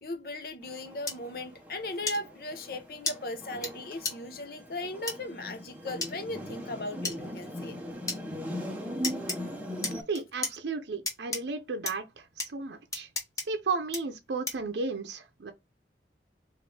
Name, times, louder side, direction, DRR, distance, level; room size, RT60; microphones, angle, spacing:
voice 1, 0.0-7.8, left 2 dB, 55° left, 0.7 m, -37 dB
sound 1, 0.6-10.0, equal, 10° right, 0.8 m, -40 dB
sound 2, 1.1-1.2 2.1-2.2 3.1-3.2 3.6-3.7 4.0-4.1 5.1-5.2 6.0-6.1 7.0-7.2 8.1-8.2 9.0-9.4 9.8-10.5 11.1-11.4 11.9-12.0 12.4-12.5 12.9-13.4 13.9-14.0 14.5-14.7, left 3 dB, 20° left, 0.9 m, -32 dB
voice 2, 10.1-13.1 13.4-15.5, right 4 dB, 80° right, 0.6 m, -34 dB
4.1 x 2.5 x 3.3 m
head